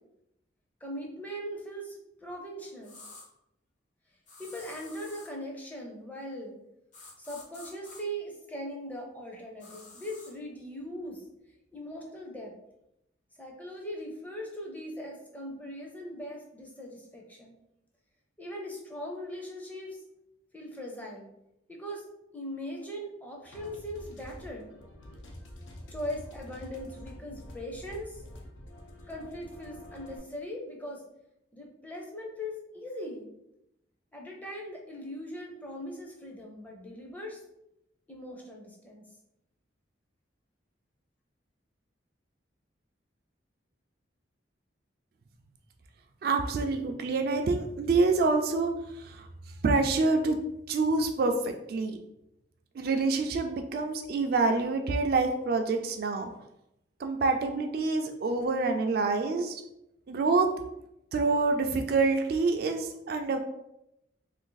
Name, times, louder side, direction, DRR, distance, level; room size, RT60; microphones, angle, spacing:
voice 1, 0.8-3.0 4.4-6.5 7.2-11.2 11.7-12.5 13.4-17.5 18.4-20.0 20.5-21.3 21.7-22.0 22.3-24.7 25.9-28.2 29.1-31.0 31.5-33.3 34.1-37.4 38.1-39.0, equal, 10° left, -1 dB, 0.5 m, -40 dB
sound 1, 2.8-3.3 4.3-5.3 6.9-8.0 9.6-10.3, left 3 dB, 40° left, 0.7 m, -49 dB
sound 2, 23.5-30.2, left 1 dB, 80° left, 0.6 m, -47 dB
voice 2, 46.2-49.3 49.6-50.4 50.7-52.0 52.7-56.3 57.0-59.6 60.1-60.5 61.1-63.4, right 3 dB, 50° right, 5 dB, 0.3 m, -27 dB
2.5 x 2.5 x 3.8 m, 0.83 s
head